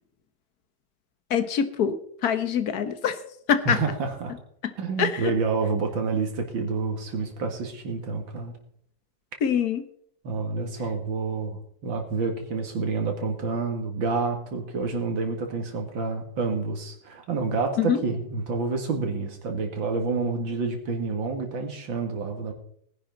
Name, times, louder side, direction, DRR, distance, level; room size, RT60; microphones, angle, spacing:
voice 1, 1.3-3.2 3.5-3.8 5.0-5.3 9.4-9.8 17.8-18.0, left 8 dB, 55° left, 11 dB, 1.5 m, -24 dB
voice 2, 3.7-4.4 4.8-8.5 10.2-22.5, right 4 dB, 80° right, 4 dB, 2.5 m, -28 dB
19.0 x 10.5 x 4.0 m, 0.67 s
omnidirectional pair, 2.1 m